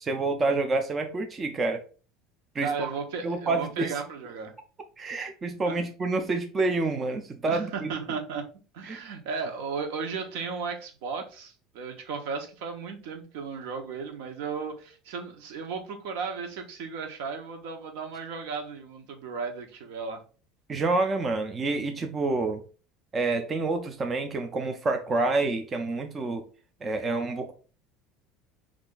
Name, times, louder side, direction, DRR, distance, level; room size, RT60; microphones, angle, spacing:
voice 1, 0.0-1.8 2.6-2.9 3.2-3.9 5.0-7.9 8.9-9.0 20.7-22.6 23.1-26.4 26.8-27.5, right 3 dB, 20° right, 0.3 m, -28 dB
voice 2, 2.6-4.5 5.7-5.8 7.5-8.4 8.7-20.2, right 5 dB, 75° right, 0.8 m, -35 dB
3.2 x 2.5 x 3.7 m
cardioid pair, 175°, 0 cm